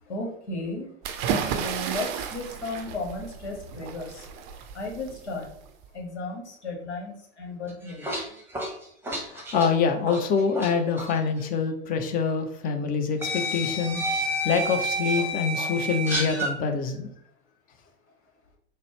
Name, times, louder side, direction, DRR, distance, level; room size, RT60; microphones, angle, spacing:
voice 1, 0.1-0.9 1.4-4.3 4.7-5.5 5.9-8.1, left 2 dB, 75° left, 0 dB, 1.2 m, -34 dB
sound 1, 1.0-5.9, right 7 dB, 35° right, 0.5 m, -33 dB
sound 2, 7.7-10.7 11.0-11.2 12.3-12.4 13.2-16.5, equal, 5° right, 0.9 m, -29 dB
voice 2, 9.3-14.0 14.4-17.1, left 5 dB, 25° left, 6 dB, 0.5 m, -25 dB
3.9 x 2.1 x 3.3 m, 0.67 s
figure-of-eight pair, 90°, 34 cm